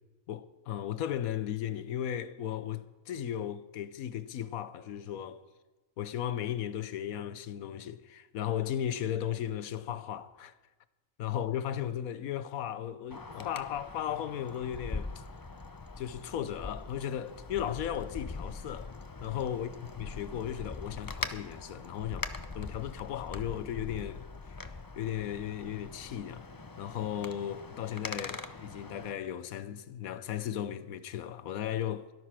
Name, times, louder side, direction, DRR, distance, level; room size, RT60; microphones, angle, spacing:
voice 1, 0.3-5.4 6.0-10.5 11.2-15.1 16.0-18.9 19.2-19.7 20.0-22.3 22.5-24.2 24.5-26.5 26.8-32.1, left 10 dB, 85° left, 1.2 m, -36 dB
Wind, 13.1-29.1, left 3 dB, 30° left, 0.3 m, -42 dB
18.0 x 12.0 x 5.8 m
omnidirectional pair, 1.5 m